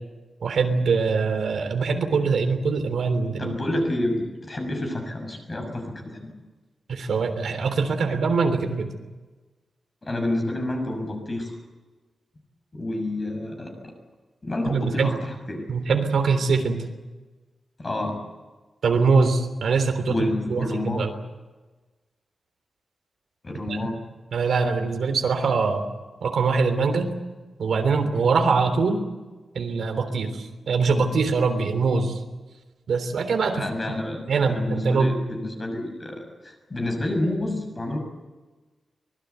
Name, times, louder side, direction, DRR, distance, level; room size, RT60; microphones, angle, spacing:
voice 1, 0.4-3.5 6.9-8.9 14.6-15.1 15.7-16.8 18.8-21.1 23.7-23.8 24.3-25.8 26.2-27.1 27.6-29.0 29.5-32.2 32.9-33.6 34.3-35.1, right 4 dB, 80° right, 7 dB, 3.4 m, -23 dB
voice 2, 3.4-6.3 10.0-11.6 12.7-13.9 14.4-15.6 17.8-18.2 20.1-21.1 23.4-24.0 33.5-38.0, left 1 dB, 25° left, 3 dB, 6.4 m, -29 dB
24.5 x 21.0 x 8.2 m, 1.2 s
wide cardioid pair, 170°, 0 cm